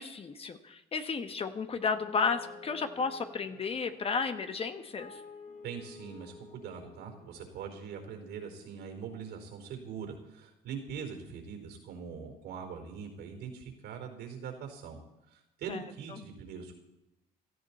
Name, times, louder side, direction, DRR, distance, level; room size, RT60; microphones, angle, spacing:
voice 1, 0.0-5.2 15.7-15.8, left 5 dB, 35° left, 8 dB, 1.3 m, -33 dB
sound 1, 1.8-9.8, left 4 dB, 60° left, 6.9 m, -52 dB
voice 2, 5.6-15.0 15.3-16.7, right 6 dB, 80° right, 4 dB, 4.4 m, -42 dB
17.5 x 14.0 x 4.3 m, 0.91 s
cardioid pair, 110°, 17 cm